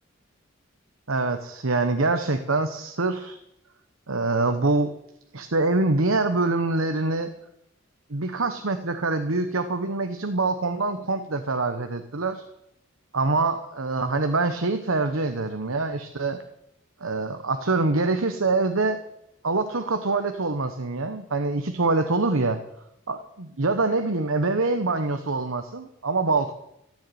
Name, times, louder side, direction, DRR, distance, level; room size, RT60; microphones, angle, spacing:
voice 1, 1.1-3.4 4.1-4.9 5.3-7.3 8.1-12.4 13.1-16.4 17.0-19.0 19.4-22.6 23.1-26.5, right 3 dB, 80° right, 8 dB, 1.1 m, -25 dB
15.0 x 9.9 x 9.2 m, 0.82 s
head